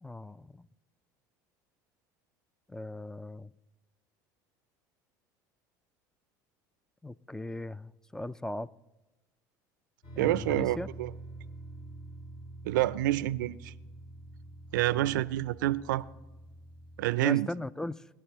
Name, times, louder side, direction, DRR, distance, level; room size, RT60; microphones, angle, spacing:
voice 1, 0.0-0.6 2.7-3.5 7.0-8.7 10.2-10.9 14.9-15.2 17.2-18.0, left 1 dB, 5° left, 0.3 m, -38 dB
sound 1, 10.0-17.1, right 2 dB, 55° left, 5.6 m, -46 dB
voice 2, 10.2-11.1 12.6-13.7 14.7-16.0 17.0-17.5, right 15 dB, 80° right, 0.4 m, -28 dB
21.5 x 11.5 x 3.1 m
hypercardioid pair, 80°, 10 cm